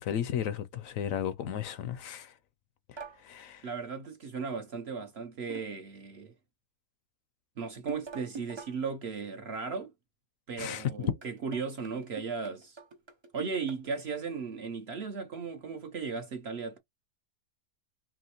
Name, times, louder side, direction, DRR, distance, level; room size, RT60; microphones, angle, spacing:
voice 1, 0.0-2.4 2.9-3.7 10.6-10.9, left 9 dB, 70° left, 0.9 m, -34 dB
sound 1, 3.0-3.2 5.5-5.9 7.9-8.8 11.0-13.9, right 4 dB, 35° right, 0.4 m, -45 dB
voice 2, 3.6-6.3 7.6-9.9 10.5-12.8 13.3-16.8, right 5 dB, 55° right, 0.8 m, -36 dB
4.8 x 3.0 x 2.9 m
omnidirectional pair, 1.6 m